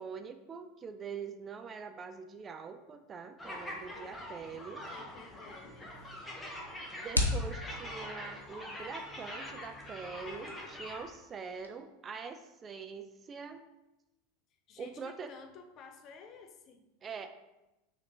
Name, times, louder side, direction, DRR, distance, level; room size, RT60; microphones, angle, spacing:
voice 1, 0.0-4.9 7.0-13.6 14.8-15.3 17.0-17.3, right 5 dB, 25° right, 8 dB, 0.3 m, -44 dB
sound 1, 3.4-11.0, left 1 dB, 10° left, 1.0 m, -44 dB
voice 2, 4.9-6.5 14.7-16.8, left 5 dB, 40° left, 6 dB, 0.5 m, -53 dB
sound 2, 5.4-11.7, left 2 dB, 90° left, 0.4 m, -39 dB
6.3 x 2.9 x 2.7 m, 0.97 s
figure-of-eight pair, 80°, 0 cm